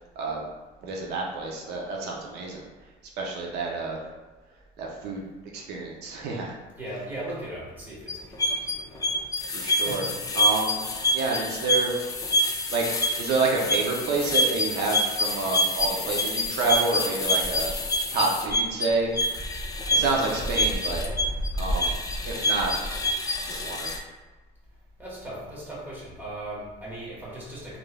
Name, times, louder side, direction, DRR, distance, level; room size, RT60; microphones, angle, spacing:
voice 1, 0.8-2.6 3.2-4.0 4.8-5.3 5.5-6.5 9.5-10.1 10.4-10.8 11.1-11.9 12.7-12.9 13.2-17.7 18.1-19.1 19.9-21.0 21.6-22.0 22.2-22.7 23.5-23.9, right 3 dB, 80° right, -1 dB, 0.5 m, -28 dB
voice 2, 6.8-9.5 9.8-10.4 19.9-20.4 25.0-27.8, right 1 dB, 10° right, -6 dB, 1.2 m, -39 dB
sound 1, 8.1-24.0, left 1 dB, 20° left, 0.3 m, -26 dB
3.2 x 2.4 x 2.2 m, 1.2 s
cardioid pair, 110°, 17 cm